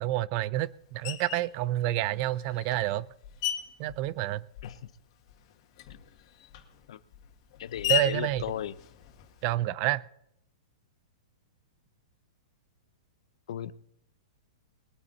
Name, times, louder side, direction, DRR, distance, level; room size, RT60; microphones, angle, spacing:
voice 1, 0.0-3.1 3.8-4.4 7.9-8.4 9.4-10.0, right 14 dB, 40° right, 0.6 m, -28 dB
Screech, 1.0-1.5 2.3-5.0 5.3-9.6, left 12 dB, 50° left, 2.0 m, -36 dB
voice 2, 4.6-4.9 6.9-7.0 7.6-8.7 13.5-13.7, left 10 dB, 70° left, 0.7 m, -36 dB
21.0 x 9.0 x 4.1 m
hypercardioid pair, 140°, 3 cm